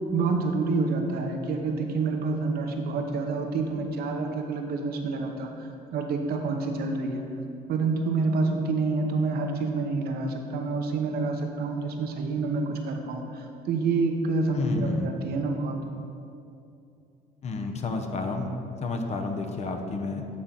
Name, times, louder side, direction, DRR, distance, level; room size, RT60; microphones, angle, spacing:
voice 1, 0.1-5.5 5.9-7.2 7.7-15.8, right 3 dB, 65° right, 3 dB, 0.9 m, -28 dB
voice 2, 14.5-15.1 17.4-18.5 18.8-20.3, left 3 dB, 40° left, 4 dB, 0.8 m, -30 dB
8.5 x 3.7 x 5.7 m, 2.7 s
cardioid pair, 110°, 17 cm